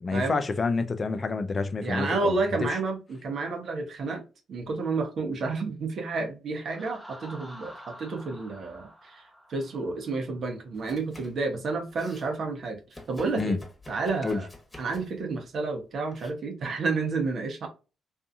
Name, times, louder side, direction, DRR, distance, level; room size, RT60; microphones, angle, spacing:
voice 1, 0.0-2.4 2.7-2.8 13.4-13.6 14.2-14.4, left 4 dB, 40° left, 0.4 m, -28 dB
voice 2, 1.8-4.2 4.5-9.2 9.5-12.8 13.1-13.6 13.9-14.5 14.8-17.7, right 3 dB, 60° right, 0.8 m, -30 dB
Laughter, 6.7-10.4, equal, 5° right, 0.7 m, -47 dB
Domestic sounds home sounds, 10.7-11.4 11.7-12.3 12.9-15.2 16.1-16.3, left 1 dB, 20° left, 1.1 m, -48 dB
2.6 x 2.3 x 2.5 m
hypercardioid pair, 45°, 0 cm